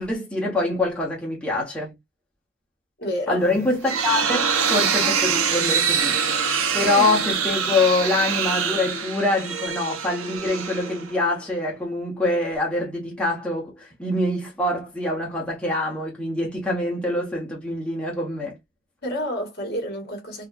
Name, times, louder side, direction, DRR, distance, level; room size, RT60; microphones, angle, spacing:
voice 1, 0.0-1.9 3.3-6.2 6.7-18.6, left 2 dB, 5° left, 1.1 m, -25 dB
voice 2, 3.0-3.5 6.8-7.1 19.0-20.5, equal, 50° left, 1.6 m, -29 dB
sound 1, 3.5-11.4, right 6 dB, 90° right, 0.8 m, -24 dB
4.1 x 2.3 x 2.4 m
head